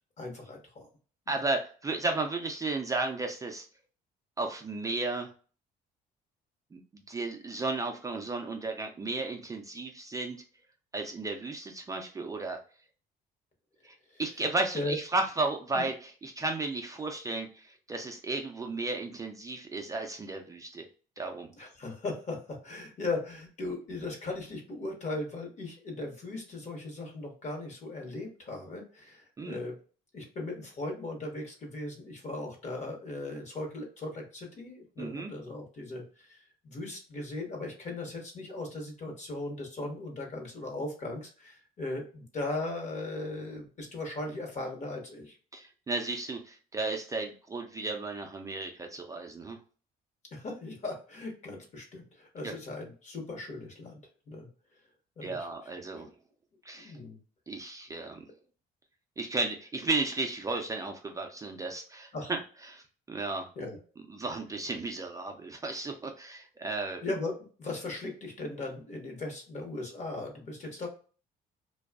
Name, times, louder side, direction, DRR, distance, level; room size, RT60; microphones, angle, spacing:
voice 1, 0.2-0.9 1.3-1.4 14.1-14.2 14.7-15.0 15.7-15.9 21.6-29.8 30.1-45.4 50.3-54.0 54.3-54.5 55.2-55.5 56.0-56.1 56.7-57.2 62.1-62.3 63.6-63.8 67.0-70.9, left 2 dB, 45° left, 2 dB, 1.0 m, -38 dB
voice 2, 1.3-3.6 4.4-5.3 6.7-6.8 7.1-10.4 10.9-12.6 13.8-20.9 21.2-21.5 29.4-29.6 35.0-35.3 45.5-49.6 52.4-52.5 55.2-56.1 56.6-56.9 57.5-58.2 59.2-62.4 62.7-62.8 63.1-63.5 64.1-67.0, right 3 dB, 20° right, 3 dB, 0.4 m, -34 dB
2.5 x 2.3 x 2.3 m, 0.39 s
cardioid pair, 110°, 17 cm